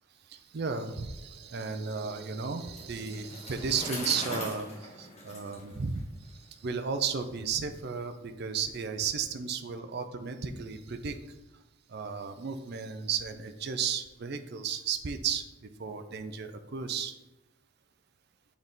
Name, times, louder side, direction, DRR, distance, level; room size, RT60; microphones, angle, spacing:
voice 1, 0.3-11.2 11.9-15.4 15.8-17.1, right 6 dB, 50° right, 8 dB, 0.5 m, -34 dB
Bicycle, 2.6-6.4, left 1 dB, 30° left, 1.7 m, -40 dB
7.0 x 4.0 x 3.7 m, 0.99 s
head